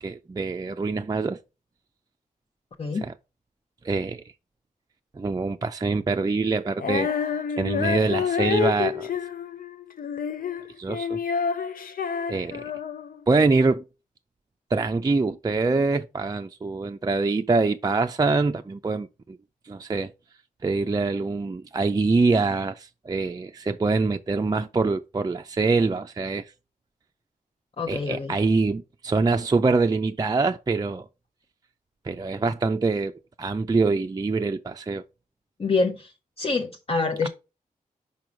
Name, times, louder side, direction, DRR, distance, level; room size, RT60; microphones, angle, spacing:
voice 1, 0.0-1.4 3.0-3.1 3.8-4.2 5.1-7.1 7.6-9.1 10.8-11.2 12.3-12.6 13.3-13.8 14.7-19.4 19.7-20.1 20.6-26.5 27.9-31.1 32.0-35.0, right 3 dB, 25° right, 0.4 m, -24 dB
Female singing, 6.8-13.2, left 7 dB, 75° left, 0.6 m, -28 dB
voice 2, 27.8-28.3 35.6-37.3, left 3 dB, 40° left, 0.8 m, -26 dB
5.2 x 4.6 x 5.0 m
cardioid pair, 55°, 15 cm